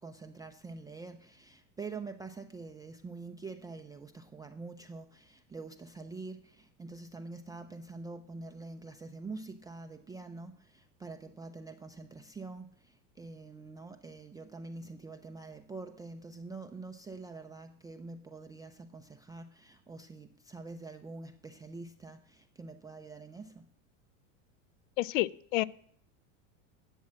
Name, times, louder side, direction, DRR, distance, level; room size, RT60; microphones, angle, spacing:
voice 1, 0.0-23.7, right 3 dB, 10° right, 5 dB, 0.4 m, -45 dB
voice 2, 25.0-25.6, left 17 dB, 65° left, 22 dB, 0.6 m, -29 dB
11.0 x 7.4 x 7.4 m, 0.66 s
supercardioid pair, 115°, 42 cm